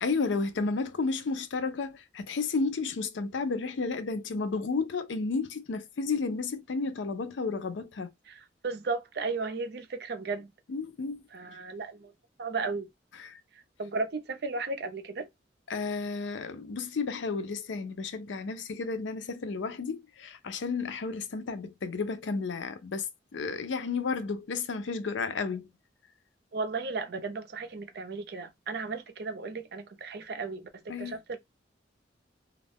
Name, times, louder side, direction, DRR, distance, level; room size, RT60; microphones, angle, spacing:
voice 1, 0.0-8.1 10.7-11.2 13.2-13.4 15.7-25.7 30.9-31.1, left 4 dB, 85° left, 0.5 m, -32 dB
voice 2, 8.3-10.5 11.3-12.1 12.4-12.9 13.5-15.3 26.5-31.4, right 4 dB, 60° right, 0.5 m, -35 dB
2.4 x 2.1 x 3.4 m
head